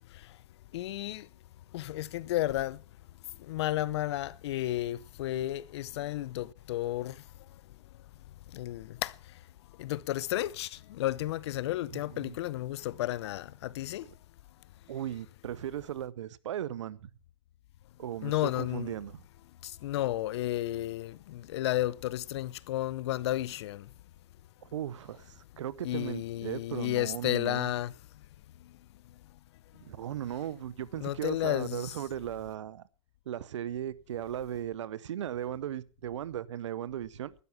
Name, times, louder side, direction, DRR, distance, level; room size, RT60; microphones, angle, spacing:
voice 1, 0.7-1.2 1.7-2.8 3.5-7.1 8.5-9.1 9.8-10.7 11.0-14.0 18.2-18.9 19.8-23.8 25.8-27.9 31.0-31.9, left 14 dB, 65° left, 0.6 m, -32 dB
voice 2, 11.9-12.4 14.9-17.1 18.0-19.2 24.6-27.7 29.8-32.8 33.3-37.3, right 11 dB, 80° right, 0.8 m, -37 dB
12.5 x 11.0 x 5.7 m
hypercardioid pair, 125°, 15 cm